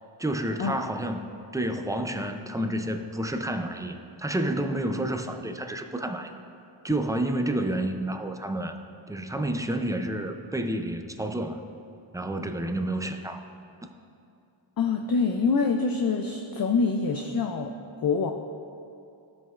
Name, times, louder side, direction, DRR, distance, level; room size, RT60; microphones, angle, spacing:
voice 1, 0.2-1.2 1.5-6.3 6.8-8.8 9.1-11.6 12.1-13.4, right 1 dB, 10° right, 6 dB, 0.3 m, -29 dB
voice 2, 14.8-17.7 18.0-18.3, left 4 dB, 50° left, 4 dB, 0.5 m, -25 dB
15.5 x 5.3 x 2.4 m, 2.6 s
wide cardioid pair, 95°, 49 cm